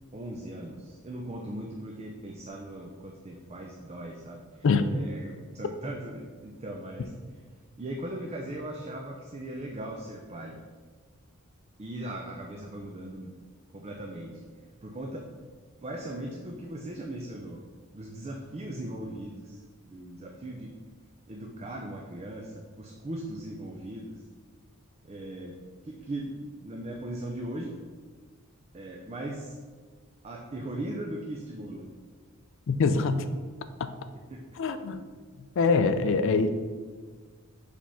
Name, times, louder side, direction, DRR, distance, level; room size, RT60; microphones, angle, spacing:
voice 1, 0.1-4.7 4.9-7.1 7.8-10.6 11.8-13.3 13.7-14.4 14.8-15.3 15.8-17.6 17.9-20.7 21.3-24.2 25.0-25.6 25.8-27.7 28.7-29.6 30.2-31.8 34.3-34.6, right 1 dB, 30° right, 1 dB, 0.5 m, -39 dB
voice 2, 32.7-33.3 33.8-33.9 34.6-35.0 35.6-36.5, left 4 dB, 60° left, 11 dB, 0.4 m, -24 dB
5.0 x 3.4 x 5.6 m, 1.5 s
head